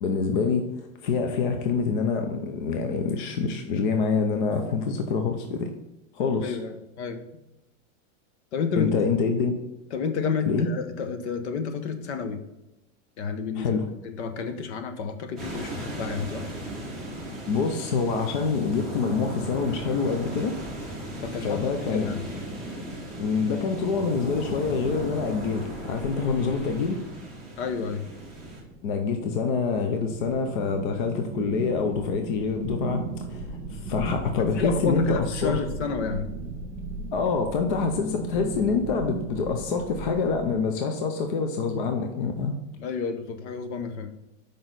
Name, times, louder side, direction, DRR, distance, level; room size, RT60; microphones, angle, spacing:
voice 1, 0.0-5.7 6.1-6.6 8.7-9.6 10.4-10.7 13.6-13.9 17.5-20.6 21.4-22.1 23.2-27.0 28.8-35.6 37.1-42.6, left 5 dB, 40° left, 5 dB, 0.5 m, -26 dB
voice 2, 6.4-7.2 8.5-8.9 9.9-12.4 13.2-16.7 21.2-21.6 21.9-22.2 27.6-28.0 34.6-36.3 42.8-44.1, left 5 dB, 60° left, 9 dB, 0.9 m, -30 dB
sound 1, 15.4-28.6, equal, ahead, 0.9 m, -37 dB
sound 2, 23.1-40.6, right 3 dB, 25° right, 1.4 m, -38 dB
6.1 x 5.1 x 3.9 m, 0.94 s
supercardioid pair, 180°, 39 cm